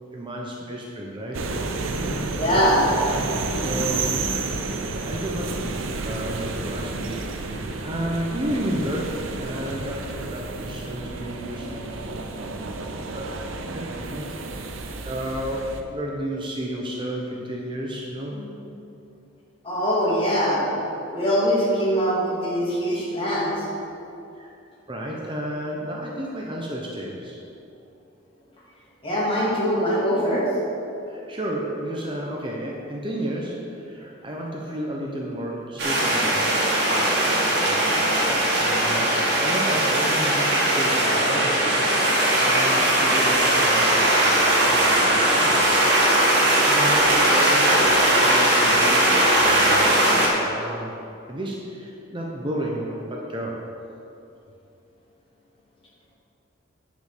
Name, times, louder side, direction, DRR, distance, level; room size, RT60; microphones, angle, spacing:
voice 1, 0.1-1.4 3.6-4.3 5.0-5.4 5.7-7.6 7.8-11.7 13.1-13.3 13.7-14.7 15.0-18.4 24.4-24.5 24.9-27.4 31.1-38.3 38.6-41.9 42.3-45.6 46.6-50.9 51.3-53.6, right 1 dB, 25° right, -2 dB, 0.9 m, -32 dB
sound 1, 1.3-15.8, right 3 dB, 90° right, 0.8 m, -30 dB
voice 2, 2.3-2.8 11.6-11.8 12.4-12.5 18.3-18.4 19.6-20.6 21.1-23.5 29.0-30.5, equal, 30° left, -6 dB, 2.5 m, -22 dB
sound 2, 35.8-50.3, right 1 dB, 55° right, 2.1 m, -19 dB
10.0 x 5.3 x 6.7 m, 2.7 s
head